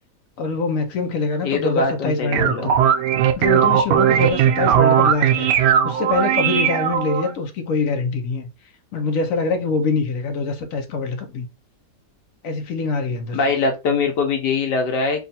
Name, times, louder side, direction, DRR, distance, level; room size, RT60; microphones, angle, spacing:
voice 1, 0.4-2.7 3.4-8.5 8.9-11.5 12.4-13.4, left 4 dB, 60° left, 1.0 m, -24 dB
voice 2, 1.4-2.7 13.3-15.2, left 4 dB, 90° left, 1.5 m, -22 dB
sound 1, 2.1-7.3, right 9 dB, 85° right, 1.2 m, -18 dB
3.6 x 2.4 x 4.0 m
omnidirectional pair, 1.8 m